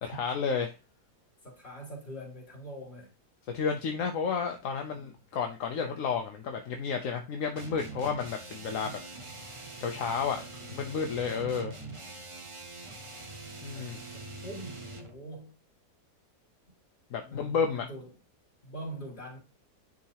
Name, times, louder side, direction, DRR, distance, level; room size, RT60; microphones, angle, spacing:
voice 1, 0.0-0.7 3.5-9.0 9.8-10.4 10.7-11.7 13.6-14.0 17.1-17.9, left 6 dB, 65° left, 1.0 m, -31 dB
voice 2, 1.4-3.1 4.9-5.1 7.0-7.2 7.9-8.1 8.7-9.0 10.5-11.0 13.7-15.5 17.2-18.1 18.6-19.4, right 1 dB, 30° left, 3.2 m, -45 dB
sound 1, 7.5-15.2, right 2 dB, 25° right, 0.7 m, -44 dB
10.5 x 3.7 x 2.9 m
omnidirectional pair, 1.8 m